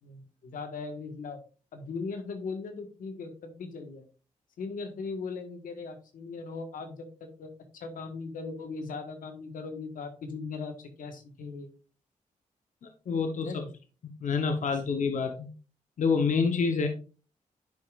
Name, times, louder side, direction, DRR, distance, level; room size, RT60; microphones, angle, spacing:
voice 1, 0.0-1.4 1.7-4.0 4.6-11.7 13.4-13.7, left 4 dB, 85° left, 6 dB, 1.4 m, -39 dB
voice 2, 13.1-13.6 14.2-15.5 16.0-16.9, left 5 dB, 65° left, 6 dB, 0.9 m, -27 dB
10.5 x 4.9 x 2.4 m, 0.35 s
cardioid pair, 65°, 14 cm